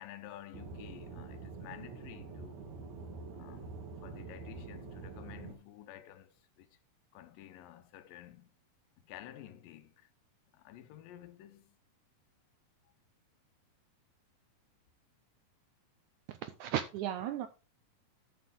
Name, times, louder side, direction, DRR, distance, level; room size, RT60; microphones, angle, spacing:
voice 1, 0.0-2.6 3.3-6.8 7.1-8.5 9.0-10.1 10.5-11.8, left 12 dB, 90° left, 2.5 m, -51 dB
Aircraft / Engine, 0.5-5.5, right 4 dB, 65° right, 2.8 m, -46 dB
voice 2, 16.3-17.5, right 11 dB, 85° right, 1.8 m, -35 dB
13.0 x 6.1 x 3.7 m
omnidirectional pair, 4.0 m